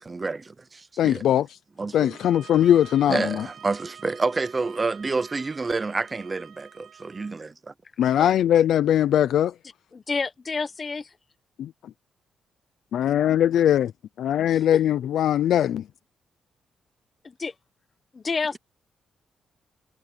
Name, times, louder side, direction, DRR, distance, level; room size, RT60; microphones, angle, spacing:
voice 1, 0.0-1.2 1.8-2.2 3.1-7.7, right 3 dB, 20° right, 0.7 m, -29 dB
voice 2, 1.0-1.5 1.9-3.5 8.0-9.5 11.6-11.7 12.9-13.9 14.2-15.8, left 10 dB, 75° left, 0.5 m, -20 dB
sound 1, 2.0-7.4, right 9 dB, 65° right, 2.2 m, -47 dB
voice 3, 9.9-11.1 14.5-14.6 17.2-17.5 18.1-18.6, left 4 dB, 25° left, 1.2 m, -30 dB
wide cardioid pair, 170°, 0 cm